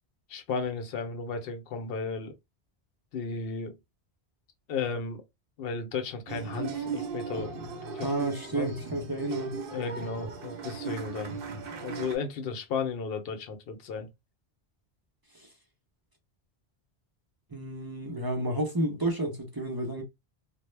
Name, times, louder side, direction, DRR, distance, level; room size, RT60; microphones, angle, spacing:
voice 1, 0.3-2.3 3.1-3.7 4.7-5.2 5.6-7.5 7.9-8.1 8.5-8.7 9.7-11.3 11.7-14.1, left 5 dB, 65° left, 0.7 m, -34 dB
sound 1, 6.3-12.2, right 5 dB, 65° right, 0.7 m, -37 dB
voice 2, 8.0-9.6 17.5-20.0, right 1 dB, 30° right, 0.4 m, -31 dB
2.0 x 2.0 x 3.1 m
omnidirectional pair, 1.1 m